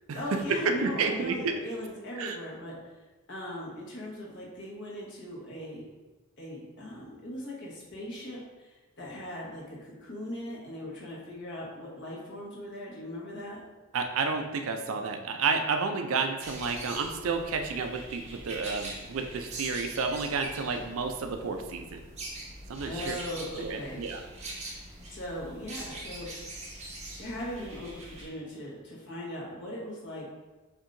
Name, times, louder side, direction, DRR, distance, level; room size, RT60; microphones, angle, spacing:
voice 1, 0.2-2.8 3.3-5.8 6.4-13.6 22.9-24.0 25.1-26.5 27.1-30.3, left 1 dB, 60° left, -5 dB, 1.4 m, -39 dB
voice 2, 0.8-1.6 2.2-2.4 13.9-22.0 22.7-23.2 23.6-24.2, right 4 dB, 70° right, 5 dB, 0.4 m, -31 dB
sound 1, 16.4-28.3, right 2 dB, 30° right, 0.9 m, -43 dB
7.1 x 2.8 x 2.6 m, 1.2 s
head